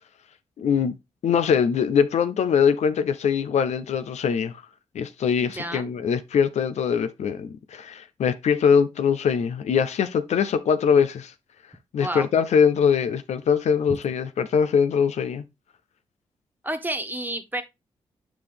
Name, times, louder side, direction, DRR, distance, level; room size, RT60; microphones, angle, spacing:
voice 1, 0.6-0.9 1.2-4.5 4.9-11.3 11.9-15.4, left 7 dB, 70° left, 0.5 m, -22 dB
voice 2, 5.4-5.9 12.0-12.3 16.6-17.6, right 1 dB, 15° right, 1.5 m, -30 dB
7.6 x 4.9 x 3.4 m
supercardioid pair, 45°, 12 cm